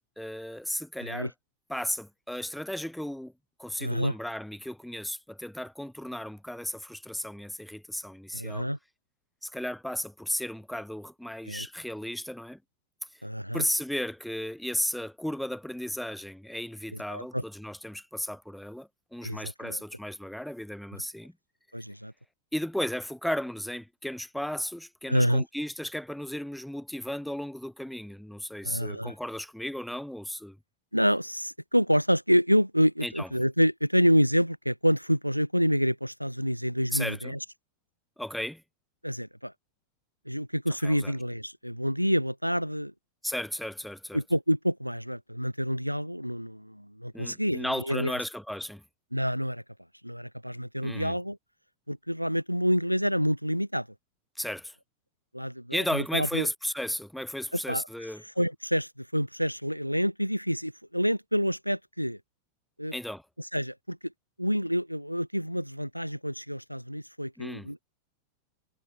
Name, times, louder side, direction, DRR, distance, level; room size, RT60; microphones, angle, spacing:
voice 1, 0.0-1.3 1.7-3.3 3.6-8.7 9.4-12.6 13.5-21.3 22.5-30.6 33.0-33.3 36.9-37.4 38.2-38.6 40.8-41.1 43.2-44.2 47.1-48.8 50.8-51.1 54.4-54.8 55.7-58.2 62.9-63.2 67.4-67.7, equal, ahead, 1.3 m, -34 dB
voice 2, 3.8-4.1 8.3-8.8 11.5-11.7 13.2-13.6 17.1-17.4 19.2-19.8 21.7-22.1 25.1-25.4 28.6-29.1 30.9-37.4 39.0-39.5 40.3-42.9 44.1-48.1 49.1-49.6 50.0-51.4 51.9-53.9 55.3-56.5 57.5-57.9 58.4-62.2 62.8-62.9 63.5-64.1 64.4-67.9, equal, 90° right, 0.7 m, -27 dB
figure-of-eight pair, 90°, 0 cm